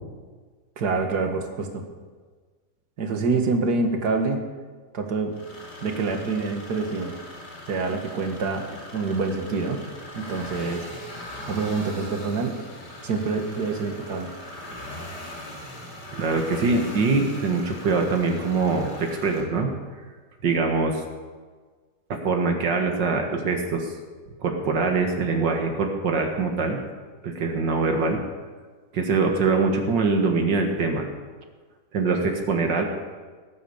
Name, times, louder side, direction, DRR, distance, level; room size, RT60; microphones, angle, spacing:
voice 1, 0.8-1.8 3.0-4.4 4.9-5.3 5.8-7.2 7.7-9.8 10.1-10.8 11.5-12.6 13.0-14.3, right 4 dB, 65° right, 4 dB, 2.3 m, -26 dB
sound 1, 5.3-19.4, left 1 dB, 65° left, 3.8 m, -40 dB
voice 2, 16.1-19.7 20.4-21.0 22.1-23.9 24.4-26.8 27.2-28.2 28.9-31.1 31.9-32.8, right 4 dB, 85° right, 2 dB, 2.3 m, -23 dB
19.0 x 9.9 x 7.2 m, 1.4 s
omnidirectional pair, 1.9 m